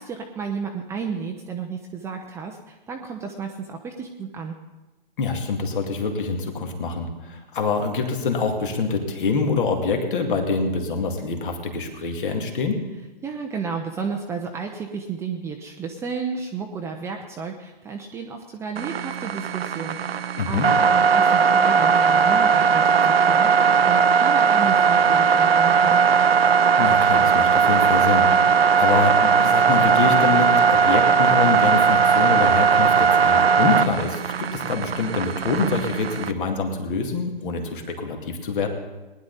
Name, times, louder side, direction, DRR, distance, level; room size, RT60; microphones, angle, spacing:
voice 1, 0.0-4.5 13.2-26.0, right 5 dB, 10° right, 2 dB, 0.5 m, -32 dB
voice 2, 5.2-12.8 20.4-20.7 26.8-38.7, left 4 dB, 60° left, 3 dB, 2.4 m, -25 dB
sound 1, 18.8-36.3, right 6 dB, 90° right, 0.7 m, -18 dB
19.0 x 10.5 x 4.1 m, 1.1 s
hypercardioid pair, 135°, 29 cm